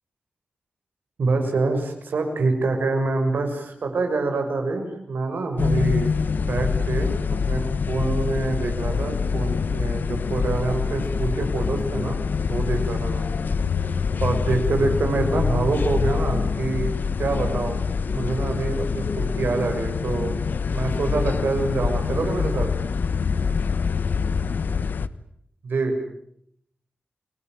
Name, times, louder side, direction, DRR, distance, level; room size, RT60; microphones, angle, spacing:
voice 1, 1.2-12.2 12.5-13.3 14.2-16.9 17.2-17.8 18.1-20.4 20.7-22.7 25.6-25.9, right 3 dB, 85° right, 5 dB, 6.7 m, -26 dB
sound 1, 5.6-25.1, left 5 dB, 75° left, 1.1 m, -25 dB
29.0 x 21.0 x 9.3 m, 0.74 s
wide cardioid pair, 155°, 3 cm